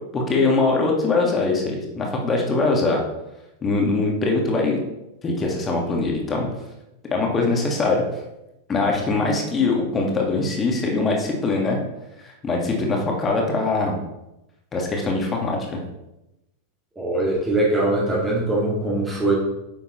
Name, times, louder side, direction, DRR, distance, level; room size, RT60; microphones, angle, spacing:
voice 1, 0.1-3.0 3.6-4.8 5.2-6.5 7.1-8.0 8.7-11.8 12.4-13.9 14.7-15.8, left 3 dB, 20° left, 0 dB, 1.8 m, -22 dB
voice 2, 17.0-19.3, right 2 dB, 15° right, -4 dB, 2.0 m, -22 dB
9.5 x 7.1 x 3.1 m, 0.92 s
figure-of-eight pair, 90°, 0 cm